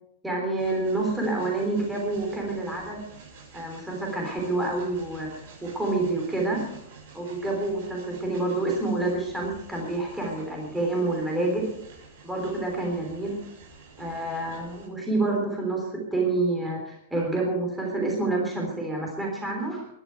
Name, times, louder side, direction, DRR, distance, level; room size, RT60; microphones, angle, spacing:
voice 1, 0.2-3.0 3.5-6.6 7.1-11.7 12.2-13.4 14.0-19.9, right 2 dB, 5° right, -1 dB, 3.5 m, -28 dB
Train, 0.6-14.9, right 4 dB, 55° right, 7.2 m, -48 dB
21.5 x 12.0 x 4.6 m, 0.77 s
supercardioid pair, 175°, 0 cm